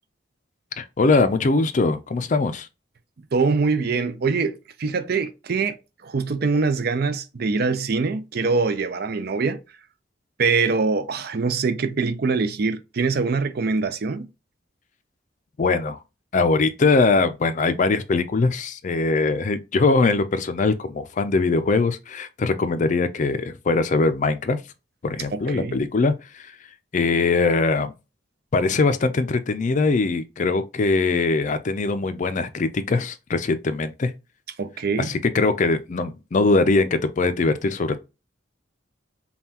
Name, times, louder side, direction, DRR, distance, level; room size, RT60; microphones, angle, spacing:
voice 1, 0.8-2.7 15.6-16.0 16.3-24.6 25.0-26.4 26.9-27.9 28.5-34.1 35.0-38.0, left 3 dB, 40° left, 0.4 m, -21 dB
voice 2, 3.3-5.8 6.0-9.6 10.4-14.3 25.3-25.8 34.6-35.1, right 4 dB, 55° right, 0.5 m, -23 dB
5.4 x 2.3 x 2.8 m
head